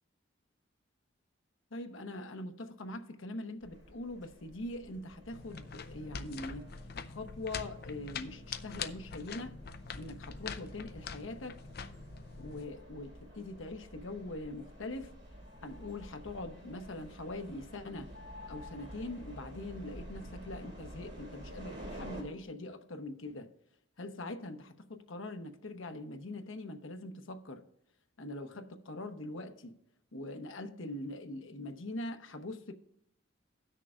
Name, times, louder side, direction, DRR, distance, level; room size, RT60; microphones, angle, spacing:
voice 1, 1.7-6.6 7.1-9.5 9.9-11.6 12.4-15.1 15.6-18.1 18.5-23.5 24.0-27.6 28.2-29.8 30.1-32.7, left 2 dB, 85° left, 0.9 m, -42 dB
sound 1, 3.6-22.2, equal, 60° right, 3.6 m, -50 dB
sound 2, 5.3-12.6, left 6 dB, 50° left, 0.5 m, -44 dB
17.0 x 6.5 x 2.5 m
head